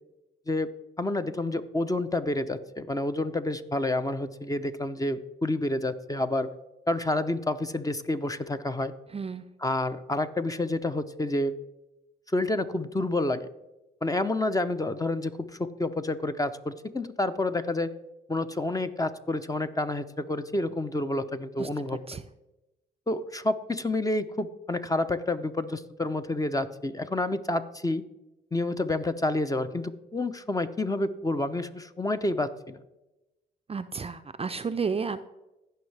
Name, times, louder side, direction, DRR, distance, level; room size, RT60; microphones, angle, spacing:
voice 1, 1.0-6.5 6.9-8.9 9.6-11.5 12.3-13.5 14.0-17.9 18.3-22.0 23.1-28.0 28.5-32.8, left 2 dB, 15° left, 10 dB, 0.7 m, -29 dB
voice 2, 9.1-9.4 21.6-21.7 22.1-22.2 33.7-35.2, right 5 dB, 30° right, 11 dB, 0.5 m, -32 dB
15.5 x 5.5 x 3.4 m, 0.98 s
supercardioid pair, 60°, 20 cm